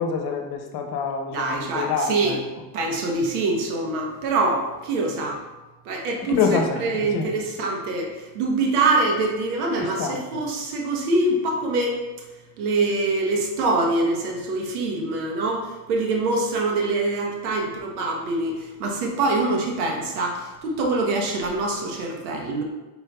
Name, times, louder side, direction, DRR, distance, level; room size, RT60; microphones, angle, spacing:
voice 1, 0.0-2.4 6.2-7.3 9.8-10.2, left 5 dB, 60° left, 4 dB, 0.9 m, -26 dB
voice 2, 1.3-2.3 2.7-5.4 5.8-6.3 6.8-12.0 12.6-22.6, right 2 dB, 90° right, 1 dB, 1.0 m, -24 dB
5.3 x 4.4 x 2.2 m, 1.1 s
supercardioid pair, 85°, 43 cm